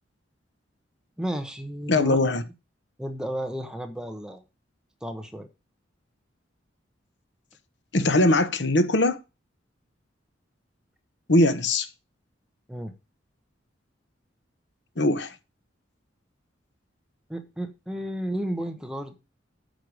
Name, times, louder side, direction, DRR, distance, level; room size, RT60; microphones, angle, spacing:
voice 1, 1.2-2.2 3.0-4.4 5.0-5.5 12.7-12.9 17.3-19.2, equal, 5° right, 1.1 m, -32 dB
voice 2, 1.9-2.4 7.9-9.2 11.3-11.9 15.0-15.3, left 2 dB, 60° left, 1.1 m, -21 dB
9.2 x 6.8 x 4.9 m
head